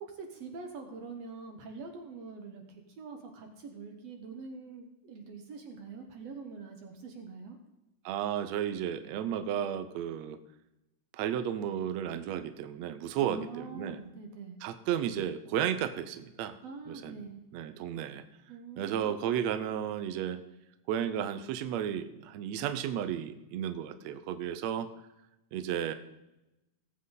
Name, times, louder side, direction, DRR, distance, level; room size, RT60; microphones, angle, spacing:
voice 1, 0.0-7.6 13.2-14.6 16.6-17.4 18.5-19.1, right 4 dB, 60° right, 4 dB, 2.0 m, -44 dB
voice 2, 8.0-10.4 11.1-14.0 14.6-16.6 16.9-17.2 17.5-18.2 18.8-20.4 20.9-24.9 25.5-25.9, right 9 dB, 80° right, 10 dB, 1.6 m, -33 dB
18.5 x 7.7 x 3.9 m, 0.95 s
omnidirectional pair, 3.9 m